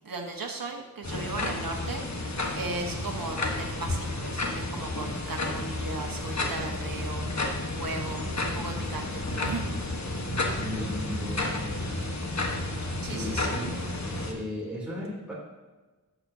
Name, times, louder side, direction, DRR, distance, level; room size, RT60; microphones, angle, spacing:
voice 1, 0.0-2.0 2.5-7.3 7.8-8.3 8.5-9.7 13.0-13.5, right 3 dB, 70° right, 2 dB, 1.3 m, -37 dB
sound 1, 1.0-14.3, left 2 dB, 50° left, 1.3 m, -31 dB
voice 2, 10.6-12.1 13.1-13.8 14.2-15.3, left 1 dB, 5° right, -6 dB, 3.0 m, -37 dB
11.0 x 7.6 x 2.8 m, 1.2 s
wide cardioid pair, 55°, 35 cm